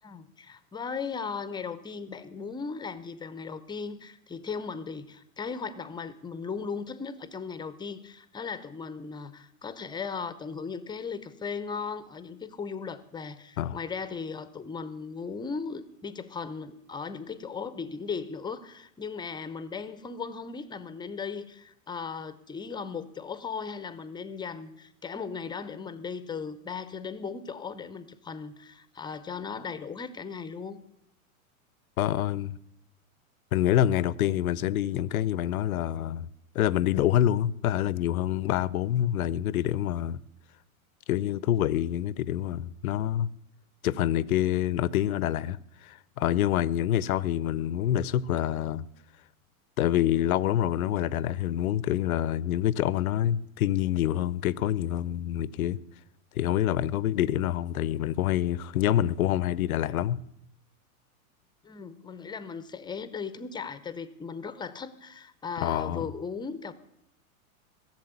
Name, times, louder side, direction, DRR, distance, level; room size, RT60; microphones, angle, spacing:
voice 1, 0.0-30.8 61.6-66.7, left 5 dB, 10° left, 0.6 m, -37 dB
voice 2, 32.0-32.5 33.5-36.3 36.5-40.2 41.1-43.3 43.8-45.6 45.8-48.8 49.8-55.8 56.4-60.2 65.6-66.1, left 12 dB, 75° left, 0.7 m, -26 dB
15.0 x 7.5 x 9.4 m
hypercardioid pair, 120°, 43 cm